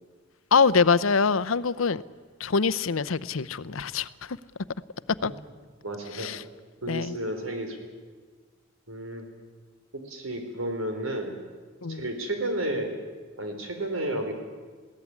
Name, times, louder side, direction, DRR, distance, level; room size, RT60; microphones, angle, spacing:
voice 1, 0.5-2.0 2.4-4.4 5.2-5.3 6.1-6.4 6.9-7.2 11.8-12.0, left 5 dB, 80° left, 15 dB, 0.7 m, -24 dB
voice 2, 5.8-6.3 6.8-7.8 8.9-9.2 10.1-11.3 11.9-12.9 13.4-14.3, right 1 dB, 85° right, 4 dB, 4.1 m, -31 dB
21.0 x 17.0 x 9.7 m, 1.5 s
head